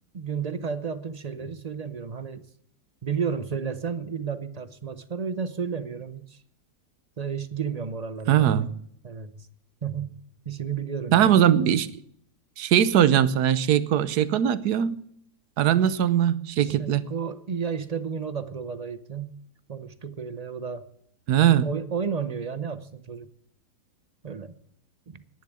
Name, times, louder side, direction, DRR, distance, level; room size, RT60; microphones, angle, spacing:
voice 1, 0.1-2.5 3.0-6.4 7.2-8.7 9.0-9.5 9.8-10.2 10.5-11.4 16.6-19.4 19.7-20.9 21.6-23.3 24.2-24.6 25.1-25.2, right 6 dB, 45° right, 13 dB, 0.5 m, -32 dB
voice 2, 8.3-8.7 11.1-11.9 12.6-15.0 15.6-17.0 21.3-21.7, right 10 dB, 85° right, 15 dB, 1.4 m, -20 dB
10.5 x 10.5 x 9.8 m, 0.67 s
omnidirectional pair, 1.7 m